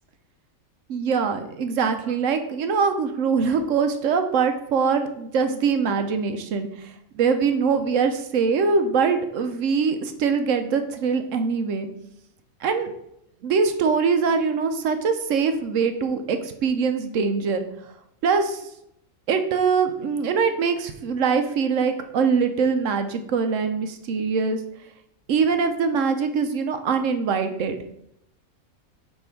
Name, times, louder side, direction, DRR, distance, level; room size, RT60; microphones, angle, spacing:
voice 1, 0.9-11.9 12.6-12.9 13.4-17.6 18.2-18.7 19.3-24.6 25.3-27.8, right 5 dB, 70° right, 8 dB, 1.0 m, -23 dB
5.6 x 4.3 x 4.4 m, 0.78 s
omnidirectional pair, 1.4 m